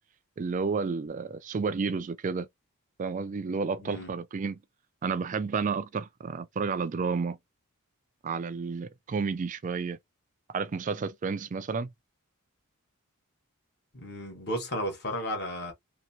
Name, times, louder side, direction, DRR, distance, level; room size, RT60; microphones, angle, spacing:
voice 1, 0.4-2.5 3.0-4.6 5.0-7.4 8.2-10.0 10.5-11.9, right 5 dB, 35° right, 0.3 m, -31 dB
voice 2, 3.8-4.1 13.9-15.7, equal, 45° left, 1.3 m, -34 dB
2.8 x 2.8 x 2.7 m
head